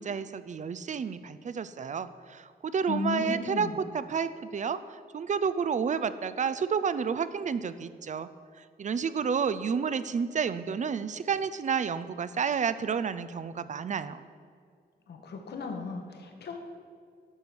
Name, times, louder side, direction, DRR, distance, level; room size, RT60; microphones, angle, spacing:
voice 1, 0.0-8.3 8.6-14.2, right 6 dB, 45° right, 14 dB, 0.5 m, -30 dB
voice 2, 2.9-3.8 15.1-16.6, left 3 dB, 75° left, 3 dB, 1.3 m, -35 dB
11.5 x 4.6 x 7.0 m, 2.1 s
cardioid pair, 100°, 17 cm